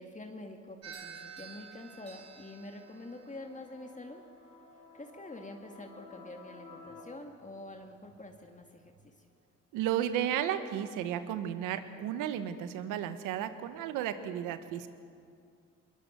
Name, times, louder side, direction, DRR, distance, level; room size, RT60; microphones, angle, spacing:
voice 1, 0.0-4.2 4.9-9.3, left 2 dB, 25° left, 3 dB, 2.1 m, -46 dB
sound 1, 0.8-9.2, right 7 dB, 55° right, 4.5 m, -54 dB
sound 2, 1.5-7.0, left 3 dB, 90° left, 4.2 m, -55 dB
voice 2, 9.7-14.9, right 10 dB, 85° right, 11 dB, 1.2 m, -33 dB
21.5 x 20.5 x 6.8 m, 2.4 s
supercardioid pair, 60°, 31 cm